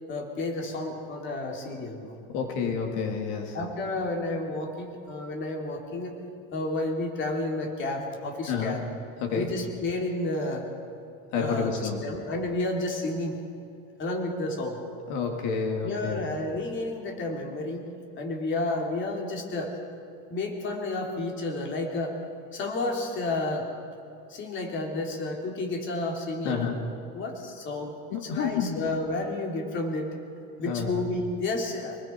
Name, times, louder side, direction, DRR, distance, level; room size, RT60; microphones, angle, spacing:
voice 1, 0.1-2.2 2.6-2.8 3.5-6.2 6.5-8.8 9.3-10.7 11.4-13.4 14.0-14.8 15.8-17.9 18.2-19.7 20.3-22.2 22.5-23.7 24.3-26.6 27.1-30.1 30.6-32.0, left 2 dB, 35° left, 1 dB, 3.3 m, -31 dB
voice 2, 2.3-3.6 8.5-8.7 9.2-9.5 11.3-12.0 15.1-16.3 26.4-26.8 28.1-28.8 30.7-30.9, left 6 dB, 70° left, 2 dB, 2.8 m, -29 dB
27.5 x 20.5 x 4.6 m, 2.5 s
cardioid pair, 140°, 32 cm